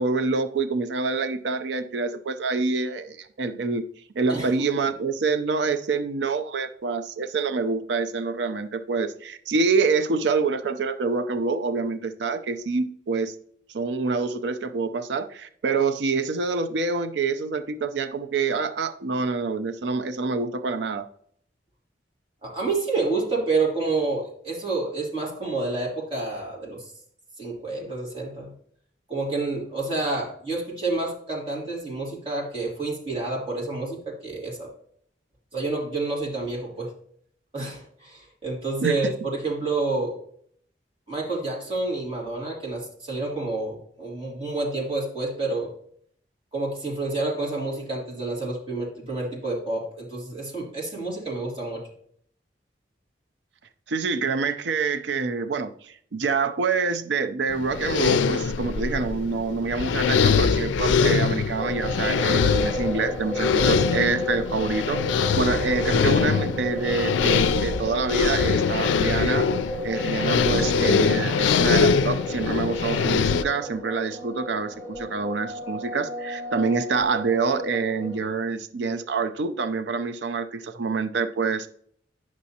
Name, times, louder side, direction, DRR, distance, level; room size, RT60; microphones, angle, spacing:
voice 1, 0.0-3.8 4.2-13.3 13.7-21.1 38.8-39.0 53.9-69.5 69.8-81.7, right 4 dB, 75° right, 9 dB, 0.5 m, -26 dB
voice 2, 22.4-26.8 27.4-28.5 29.1-34.7 35.5-36.9 37.5-40.1 41.1-45.7 46.5-51.8, right 3 dB, 30° right, -4 dB, 2.4 m, -29 dB
sound 1, 57.5-73.4, left 6 dB, 85° left, 0.4 m, -23 dB
sound 2, 61.6-78.2, left 1 dB, 15° left, 1.8 m, -33 dB
9.3 x 6.2 x 2.8 m, 0.64 s
head